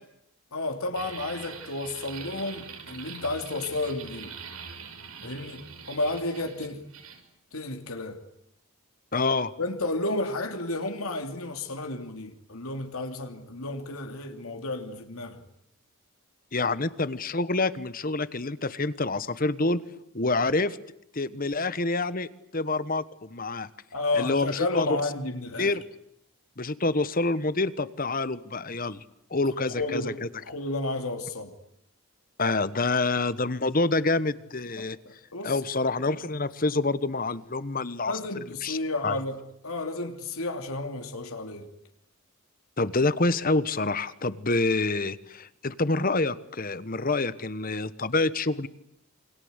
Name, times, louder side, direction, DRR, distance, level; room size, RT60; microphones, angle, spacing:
voice 1, 0.5-4.4 5.2-6.9 7.5-8.2 9.6-15.4 16.6-16.7 23.9-25.7 29.8-30.2 30.4-31.5 34.8-35.6 38.1-41.7, left 2 dB, 80° left, 3.0 m, -32 dB
sound 1, 0.9-7.2, right 6 dB, 80° right, 5.6 m, -43 dB
voice 2, 9.1-9.5 16.5-19.8 20.1-20.8 21.1-23.7 24.1-24.9 25.6-25.8 26.6-29.0 29.3-30.3 32.4-35.0 35.4-38.1 38.6-38.8 39.0-39.2 42.8-48.7, left 3 dB, 40° left, 1.2 m, -27 dB
28.5 x 25.0 x 8.2 m
head